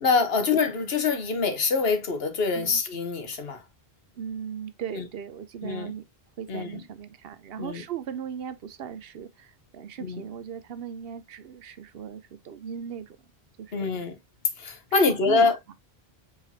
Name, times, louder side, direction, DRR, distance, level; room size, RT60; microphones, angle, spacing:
voice 1, 0.0-3.6 4.9-5.0 5.6-5.9 6.5-6.7 7.6-7.8 10.0-10.2 13.7-14.2 14.6-15.6, left 4 dB, 75° left, 1.3 m, -25 dB
voice 2, 4.2-6.0 6.4-13.2 13.6-14.1 14.9-15.7, right 8 dB, 70° right, 0.8 m, -38 dB
4.8 x 3.8 x 2.7 m
omnidirectional pair, 1.0 m